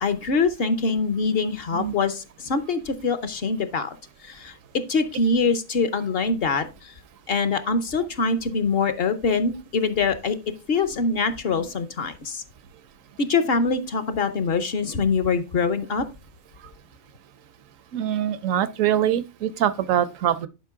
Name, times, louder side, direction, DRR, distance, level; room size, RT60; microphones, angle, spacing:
voice 1, 0.0-4.0 4.2-4.5 4.9-6.9 7.3-10.4 10.7-12.4 13.2-16.1, left 4 dB, 55° left, 0.8 m, -24 dB
voice 2, 17.9-20.5, right 10 dB, 75° right, 1.0 m, -23 dB
10.5 x 5.0 x 3.5 m
omnidirectional pair, 1.4 m